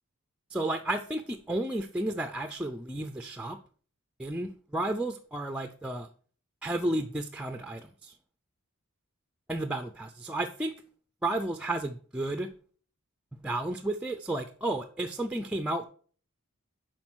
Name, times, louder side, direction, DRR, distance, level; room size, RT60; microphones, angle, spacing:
voice 1, 0.5-3.6 4.2-6.1 6.6-8.2 9.5-10.7 11.2-12.5 13.4-15.8, right 1 dB, 5° right, 8 dB, 0.4 m, -32 dB
7.4 x 5.0 x 6.1 m, 0.44 s
head